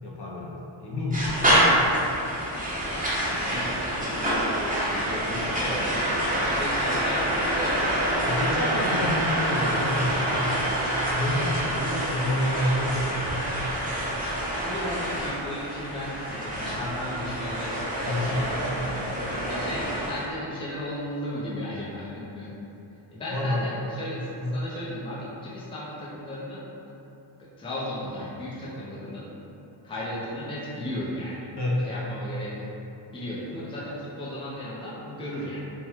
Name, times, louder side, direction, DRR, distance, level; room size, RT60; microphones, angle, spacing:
voice 1, 0.0-1.5 8.2-10.8 11.1-13.6 18.1-18.3 23.3-23.6 24.4-24.6 31.6-31.8, left 1 dB, 55° left, -5 dB, 0.7 m, -29 dB
sound 1, 1.1-20.2, right 1 dB, 15° right, 0.8 m, -27 dB
voice 2, 3.1-7.9 11.6-12.1 14.6-22.5 23.1-26.6 27.6-29.3 29.8-31.6 31.8-32.6 33.1-35.7, left 1 dB, 10° left, -8 dB, 0.5 m, -35 dB
3.5 x 2.1 x 4.4 m, 2.9 s
wide cardioid pair, 165°, 50 cm